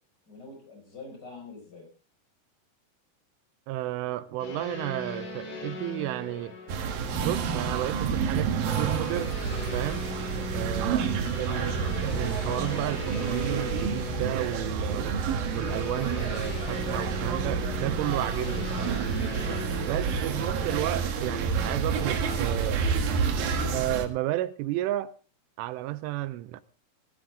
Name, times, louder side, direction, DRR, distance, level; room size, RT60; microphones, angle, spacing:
voice 1, 0.3-1.9 11.1-11.3 20.2-20.5, left 3 dB, 20° left, 6.0 m, -46 dB
voice 2, 3.7-6.5 7.2-9.4 9.7-10.1 10.5-11.8 12.1-15.1 15.5-19.1 19.8-22.8 23.7-25.1 25.6-26.6, right 15 dB, 85° right, 3.3 m, -32 dB
sound 1, 4.4-22.5, left 3 dB, 75° left, 7.1 m, -40 dB
sound 2, 6.7-24.1, right 6 dB, 60° right, 2.7 m, -29 dB
15.5 x 14.0 x 3.7 m
omnidirectional pair, 5.6 m